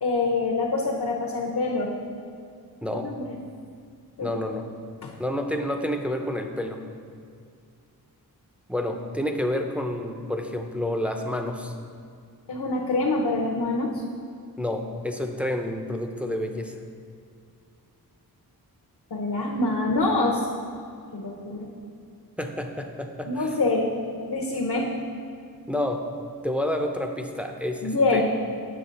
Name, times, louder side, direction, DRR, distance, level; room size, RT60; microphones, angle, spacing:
voice 1, 0.0-1.9 3.0-3.2 4.2-4.4 5.0-5.1 12.5-14.0 19.1-20.4 21.1-21.7 23.3-24.0 24.3-24.9 27.8-28.2, left 3 dB, 65° left, -1 dB, 0.8 m, -25 dB
voice 2, 4.2-4.7 5.2-6.8 8.7-11.7 14.6-16.8 22.4-23.6 25.7-26.1 26.4-28.2, left 1 dB, 5° right, 4 dB, 0.5 m, -29 dB
7.7 x 6.1 x 4.1 m, 2.3 s
wide cardioid pair, 80°, 37 cm